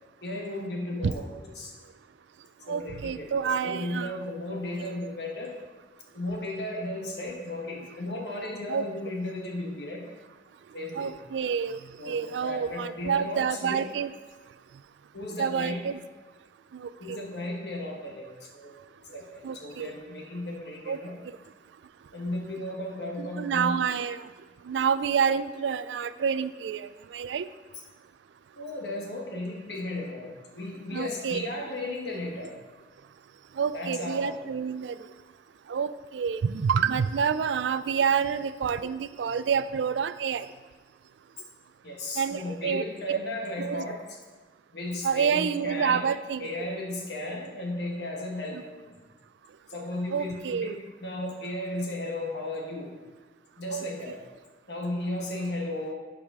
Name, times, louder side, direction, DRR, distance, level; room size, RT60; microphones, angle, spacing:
voice 1, 0.2-1.2 1.5-1.7 2.7-5.5 6.1-10.0 10.7-11.1 12.0-13.9 15.1-15.8 17.0-18.7 19.1-21.1 22.1-23.8 28.6-32.5 33.7-34.4 41.8-44.0 44.7-46.0 46.4-49.0 49.7-50.7 51.0-52.9 53.6-54.2 54.7-55.9, left 1 dB, 70° left, -1 dB, 1.2 m, -35 dB
voice 2, 2.7-4.2 8.7-8.8 10.9-11.8 12.1-14.1 15.4-16.0 16.7-17.2 19.4-19.9 20.9-21.0 23.2-24.2 24.7-27.4 30.9-31.5 33.6-35.0 35.7-40.5 42.2-43.2 43.6-43.9 45.0-46.5 48.5-48.6 50.1-50.8 53.7-54.2, right 7 dB, 85° right, 14 dB, 0.3 m, -28 dB
11.5 x 4.9 x 3.7 m, 1.3 s
head